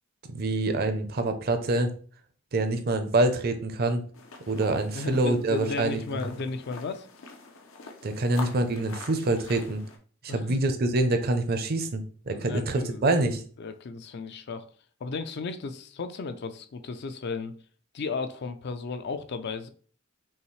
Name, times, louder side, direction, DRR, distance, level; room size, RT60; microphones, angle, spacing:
voice 1, 0.3-1.9 2.5-4.0 4.5-6.2 8.0-9.8 10.2-13.4, right 2 dB, 50° right, 0.6 m, -26 dB
sound 1, 4.1-10.0, left 4 dB, 85° left, 0.7 m, -45 dB
voice 2, 4.9-7.1 10.3-10.6 12.3-13.1 13.6-14.6 15.0-17.6 17.9-19.7, left 4 dB, 55° left, 0.4 m, -34 dB
5.5 x 2.4 x 3.1 m
head